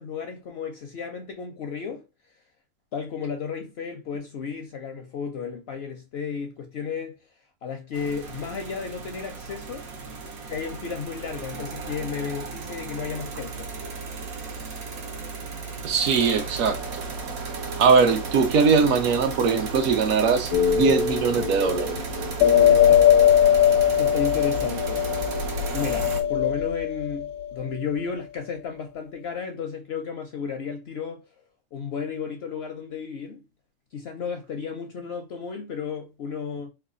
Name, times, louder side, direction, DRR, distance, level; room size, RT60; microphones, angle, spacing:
voice 1, 0.0-2.0 2.9-7.2 7.6-9.9 10.5-13.7 22.7-23.0 23.9-25.0 25.7-31.2 31.7-33.4 33.9-36.7, left 6 dB, 65° left, 0.6 m, -33 dB
sound 1, 7.9-26.2, right 4 dB, 90° right, 1.4 m, -34 dB
voice 2, 15.8-16.8 17.8-22.0, right 5 dB, 70° right, 1.0 m, -21 dB
sound 2, 20.5-27.7, left 9 dB, 85° left, 1.0 m, -21 dB
3.2 x 2.3 x 3.6 m
omnidirectional pair, 1.5 m